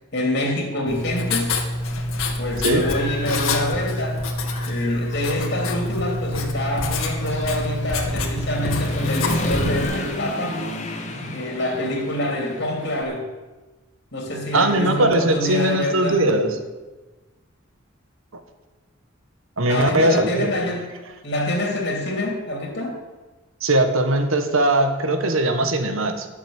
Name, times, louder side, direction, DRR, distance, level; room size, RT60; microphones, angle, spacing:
voice 1, 0.1-1.6 2.4-4.2 4.6-10.7 11.3-13.3 14.1-16.3 19.7-20.9 21.2-23.0, left 1 dB, 55° left, 1 dB, 3.0 m, -26 dB
Writing, 0.9-9.8, left 2 dB, 80° left, 2.1 m, -26 dB
Human voice / Motorcycle, 1.7-1.8 2.3-4.1 4.4-13.0, left 2 dB, 35° left, 1.6 m, -32 dB
voice 2, 14.5-16.6 19.6-20.7 23.6-26.3, right 1 dB, 75° right, 7 dB, 1.5 m, -20 dB
13.0 x 7.3 x 8.7 m, 1.2 s
head